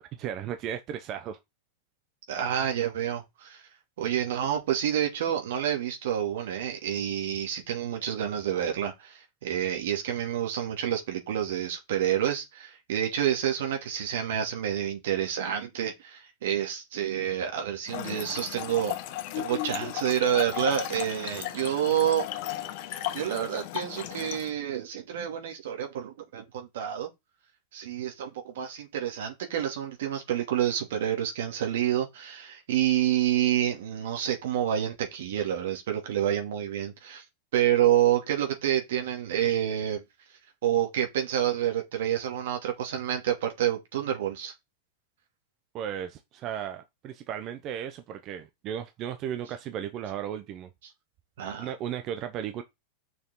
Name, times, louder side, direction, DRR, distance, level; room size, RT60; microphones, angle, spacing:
voice 1, 0.2-1.4 45.7-50.7 51.6-52.6, right 9 dB, 35° right, 0.9 m, -35 dB
voice 2, 2.3-3.6 4.0-18.9 19.3-22.2 23.1-27.1 27.7-37.2 37.5-40.0 40.6-44.5 51.4-51.7, right 10 dB, 75° right, 2.8 m, -28 dB
Trickle dribble / Fill (with liquid), 17.9-24.5, left 14 dB, 50° left, 1.3 m, -35 dB
6.8 x 6.1 x 3.9 m
supercardioid pair, 150°, 0 cm